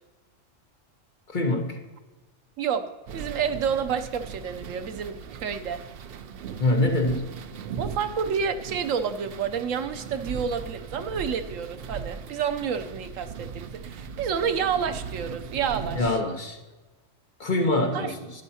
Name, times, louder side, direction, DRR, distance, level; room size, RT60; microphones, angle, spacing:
voice 1, 1.3-1.8 6.6-7.3 15.9-16.6 17.4-18.3, left 2 dB, 40° left, 3 dB, 1.1 m, -24 dB
sound 1, 3.1-16.1, right 6 dB, 60° right, 0.7 m, -39 dB
voice 2, 3.1-5.8 7.8-16.2 17.9-18.1, right 7 dB, 80° right, 9 dB, 1.1 m, -29 dB
12.0 x 9.8 x 2.8 m, 1.2 s
omnidirectional pair, 1.3 m